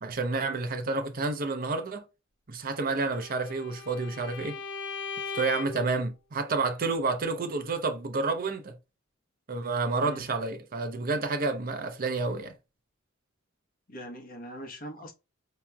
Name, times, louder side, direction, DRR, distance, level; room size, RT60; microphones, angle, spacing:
voice 1, 0.0-2.0 2.5-4.6 5.3-8.7 9.5-12.5, right 3 dB, 45° right, 0.6 m, -29 dB
Bowed string instrument, 2.9-5.9, left 4 dB, 60° left, 0.6 m, -38 dB
voice 2, 13.9-15.1, equal, 45° left, 1.0 m, -42 dB
4.8 x 2.9 x 2.2 m
head